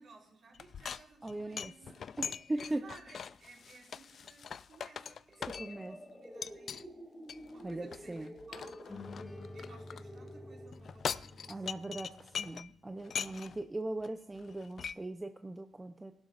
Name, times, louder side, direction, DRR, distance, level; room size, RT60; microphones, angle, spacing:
voice 1, 0.0-2.0 2.5-6.9 7.4-9.0 9.5-11.8, right 3 dB, 60° right, -3 dB, 5.2 m, -58 dB
sound 1, 0.5-6.0 6.4-6.8 7.3-10.0 10.7-12.7 13.0-13.6 14.0-14.1 14.4-14.9, left 7 dB, 55° left, 0.3 m, -42 dB
voice 2, 1.2-1.7 2.2-2.8 5.6-6.0 7.6-8.3 11.5-16.1, right 2 dB, 15° right, 6 dB, 0.6 m, -39 dB
sound 2, 5.4-10.7, equal, ahead, 1.7 m, -50 dB
sound 3, 8.9-12.5, left 2 dB, 20° left, 1.9 m, -50 dB
19.5 x 11.5 x 2.5 m, 0.79 s
cardioid pair, 110°, 0 cm